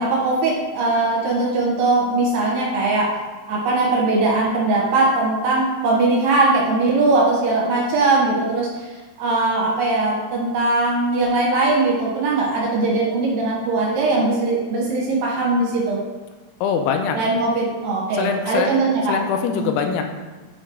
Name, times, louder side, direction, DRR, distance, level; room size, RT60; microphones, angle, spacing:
voice 1, 0.0-3.1 3.5-8.9 9.2-16.0 17.1-19.2 19.5-19.7, right 2 dB, 70° right, -5 dB, 3.3 m, -20 dB
voice 2, 16.6-17.2 18.1-18.8 19.1-20.0, left 6 dB, 85° left, 5 dB, 2.9 m, -22 dB
8.3 x 3.2 x 4.7 m, 1.2 s
omnidirectional pair, 5.4 m